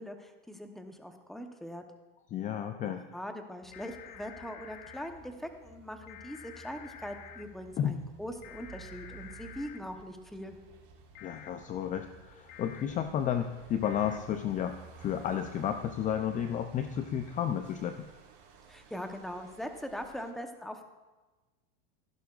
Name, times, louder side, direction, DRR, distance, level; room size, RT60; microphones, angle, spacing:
voice 1, 0.0-1.8 2.8-10.5 18.7-20.9, equal, ahead, 6 dB, 0.9 m, -41 dB
voice 2, 2.3-3.0 7.8-8.0 11.2-18.1, left 9 dB, 25° left, 8 dB, 0.5 m, -32 dB
sound 1, 3.6-17.3, right 4 dB, 30° right, 1.2 m, -55 dB
sound 2, 3.7-5.1 6.1-7.4 8.4-9.8 11.1-11.5 12.5-12.8 13.8-14.2, left 10 dB, 60° left, 0.9 m, -49 dB
sound 3, 4.6-20.3, right 5 dB, 75° right, 4.0 m, -58 dB
15.5 x 11.0 x 2.4 m, 1.2 s
supercardioid pair, 125°, 30 cm